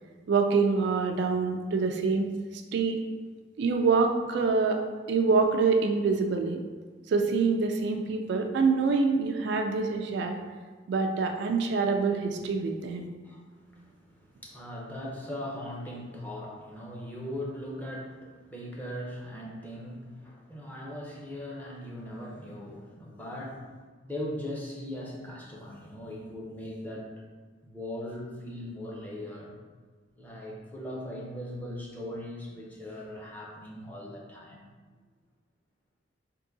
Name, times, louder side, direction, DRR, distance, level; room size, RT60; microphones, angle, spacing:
voice 1, 0.3-2.3 2.7-3.0 3.6-4.8 5.1-6.6 7.1-10.4 10.9-13.1, right 4 dB, 60° right, 4 dB, 0.3 m, -25 dB
voice 2, 13.2-23.7 24.0-27.1 27.6-29.5 30.2-34.7, left 1 dB, 10° left, -4 dB, 0.6 m, -39 dB
3.7 x 2.7 x 3.8 m, 1.4 s
head